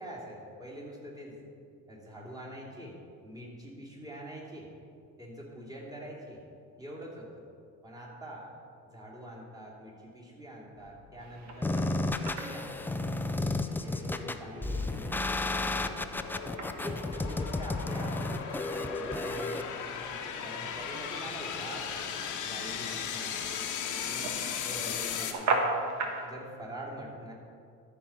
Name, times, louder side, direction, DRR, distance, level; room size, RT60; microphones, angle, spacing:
voice 1, 0.0-1.4 1.9-3.0 3.2-4.7 5.2-6.4 6.8-7.4 7.8-8.5 8.9-13.4 13.8-16.3 16.7-21.9 22.4-23.5 24.0-24.3 24.6-25.7 26.2-27.3, right 1 dB, 10° right, -5 dB, 2.8 m, -45 dB
sound 1, 10.8-25.3, left 7 dB, 65° left, 1.1 m, -38 dB
sound 2, 11.2-26.3, right 3 dB, 60° right, 1.4 m, -40 dB
sound 3, 11.6-19.6, left 2 dB, 5° left, 0.3 m, -32 dB
13.5 x 4.6 x 5.7 m, 2.3 s
cardioid pair, 105°, 32 cm